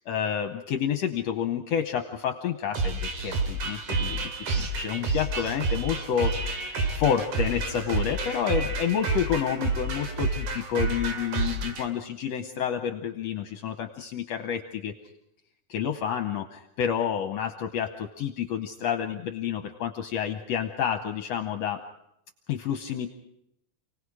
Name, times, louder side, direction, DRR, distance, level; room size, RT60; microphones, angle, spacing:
voice 1, 0.1-14.9 15.7-21.8 22.5-23.1, left 8 dB, 70° left, 6 dB, 2.0 m, -29 dB
sound 1, 2.7-11.9, right 3 dB, 85° right, 3.7 m, -29 dB
29.5 x 18.5 x 4.9 m, 0.78 s
omnidirectional pair, 3.4 m